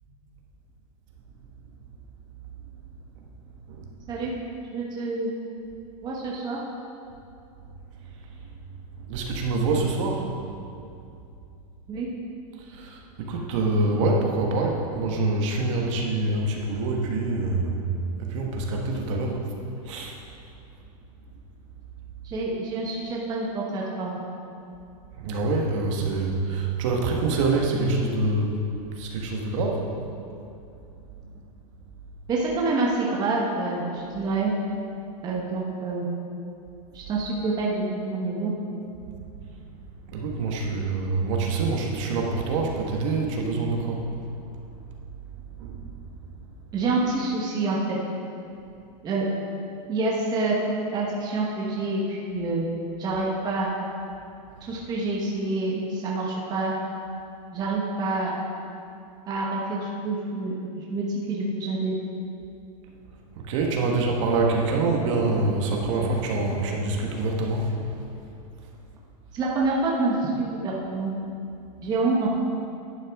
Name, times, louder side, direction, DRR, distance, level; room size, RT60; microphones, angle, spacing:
voice 1, 4.7-5.3 6.0-6.6 11.9-12.1 22.2-24.2 32.3-34.5 35.2-36.1 36.9-38.5 46.7-48.0 49.0-49.2 49.9-50.5 50.9-52.6 53.0-53.7 54.6-56.7 57.5-58.3 59.3-61.9 69.3-71.1 71.8-72.3, right 3 dB, 20° right, -4 dB, 1.2 m, -27 dB
voice 2, 9.0-10.3 12.6-17.9 18.2-19.4 19.8-20.2 25.1-28.6 28.9-29.9 39.2-39.6 40.1-44.0 44.5-44.6 45.6-45.9 63.4-67.8, right 3 dB, 50° right, 0 dB, 1.5 m, -26 dB
11.0 x 9.1 x 3.6 m, 2.6 s
supercardioid pair, 155°, 20 cm